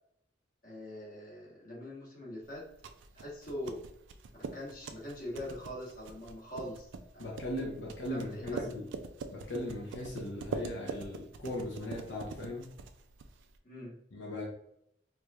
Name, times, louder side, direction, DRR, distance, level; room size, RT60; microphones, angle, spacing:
voice 1, 0.6-2.7 3.1-3.9 4.5-6.9 7.1-7.3 8.1-8.7 13.6-13.9, left 1 dB, 45° left, -4 dB, 1.3 m, -42 dB
sound 1, 2.5-13.6, right 4 dB, 75° right, 0.4 m, -44 dB
voice 2, 7.2-8.9 9.3-12.7 14.1-14.4, left 1 dB, 80° left, -3 dB, 0.8 m, -38 dB
4.6 x 2.7 x 2.4 m, 0.75 s
head